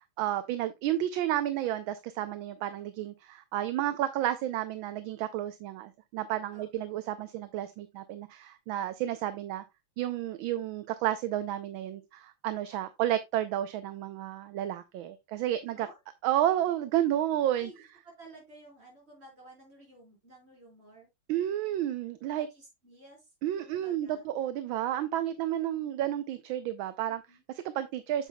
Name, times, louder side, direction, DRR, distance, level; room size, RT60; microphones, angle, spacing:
voice 1, 0.2-9.6 10.0-15.9 16.2-17.7 21.3-22.5 23.4-27.2 27.5-28.3, right 12 dB, 75° right, 1.4 m, -31 dB
voice 2, 17.6-21.1 22.3-23.3 23.6-24.3 25.7-26.0 27.0-27.4, right 1 dB, 30° right, 4.6 m, -54 dB
8.2 x 7.4 x 2.2 m
omnidirectional pair, 2.2 m